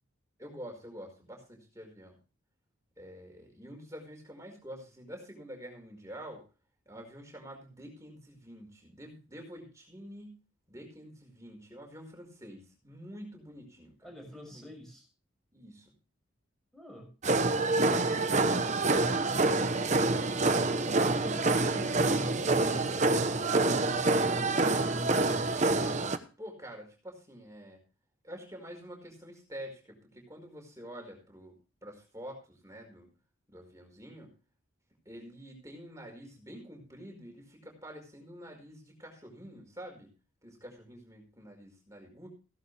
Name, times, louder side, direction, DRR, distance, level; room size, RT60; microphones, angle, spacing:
voice 1, 0.4-2.2 3.0-6.4 6.8-10.4 10.7-14.7 15.5-15.9 26.4-27.8 28.2-33.1 33.5-34.3 35.0-40.1 40.4-42.3, equal, 15° right, 2 dB, 5.0 m, -47 dB
voice 2, 14.0-15.0 16.7-17.1 18.0-19.4 20.7-24.4 24.9-25.5, equal, 5° left, 0 dB, 6.4 m, -45 dB
sound 1, 17.2-26.2, right 3 dB, 35° right, 1.0 m, -27 dB
16.5 x 11.5 x 3.4 m, 0.34 s
head